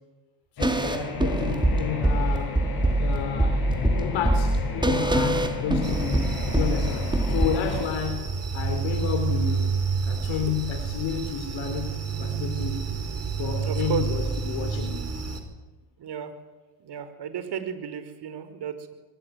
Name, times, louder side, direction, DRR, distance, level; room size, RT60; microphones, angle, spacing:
voice 1, 0.6-2.6 3.0-3.7 4.0-8.3 8.5-9.7 10.0-12.8 13.4-15.2, left 7 dB, 65° left, 7 dB, 4.1 m, -31 dB
sound 1, 0.6-7.9, left 5 dB, 50° left, 7.6 m, -33 dB
sound 2, 0.6-7.5, right 1 dB, 10° right, 2.6 m, -24 dB
sound 3, 5.8-15.4, right 5 dB, 30° right, 5.3 m, -29 dB
voice 2, 13.6-14.1 16.0-16.4 16.8-18.9, right 8 dB, 55° right, 10 dB, 5.2 m, -33 dB
23.5 x 21.5 x 9.6 m, 1.1 s
supercardioid pair, 75°, 49 cm